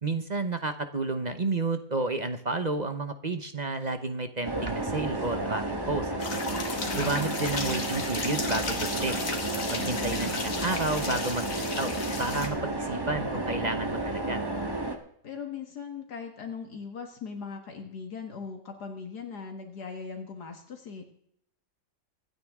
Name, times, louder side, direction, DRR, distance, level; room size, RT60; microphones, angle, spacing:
voice 1, 0.0-6.1 6.9-9.2 9.7-11.9 12.2-14.4, right 3 dB, 35° right, 8 dB, 0.8 m, -31 dB
sound 1, 4.4-15.0, right 2 dB, 15° right, 1.5 m, -32 dB
sound 2, 6.2-12.5, left 3 dB, 50° left, 2.2 m, -35 dB
voice 2, 6.7-7.1 9.8-10.3 15.2-21.0, left 5 dB, 75° left, 3 dB, 2.1 m, -39 dB
25.0 x 9.5 x 3.6 m, 0.71 s
omnidirectional pair, 1.8 m